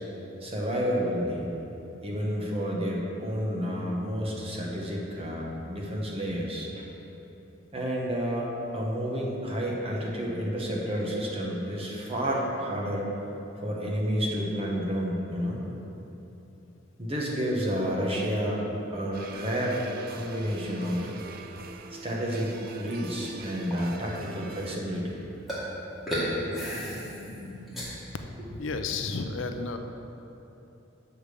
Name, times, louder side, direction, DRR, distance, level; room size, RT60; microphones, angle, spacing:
voice 1, 0.4-1.5 2.0-6.9 7.7-13.1 13.6-15.6 17.0-18.6 18.9-19.8 20.1-21.1 22.0-25.3, equal, 30° right, -3 dB, 1.2 m, -30 dB
sound 1, 19.1-24.8, right 4 dB, 50° right, 0.4 m, -43 dB
sound 2, 22.5-23.2 23.7-23.9 25.5-25.7 26.1-27.8, equal, ahead, 1.8 m, -33 dB
voice 2, 28.5-29.8, left 4 dB, 80° left, 6 dB, 0.5 m, -32 dB
7.1 x 5.0 x 6.7 m, 2.9 s
head